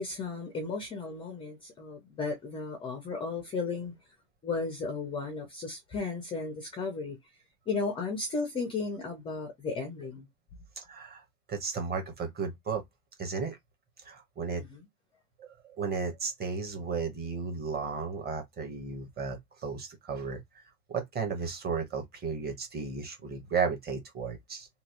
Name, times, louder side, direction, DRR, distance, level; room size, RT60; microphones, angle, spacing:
voice 1, 0.0-4.1 4.4-7.2 7.7-10.3 14.6-14.9, left 4 dB, 10° left, 0.4 m, -35 dB
voice 2, 10.8-12.8 13.2-13.6 14.0-14.6 15.4-20.4 20.9-24.7, right 5 dB, 20° right, 0.9 m, -34 dB
3.1 x 2.3 x 2.8 m
supercardioid pair, 130°, 48 cm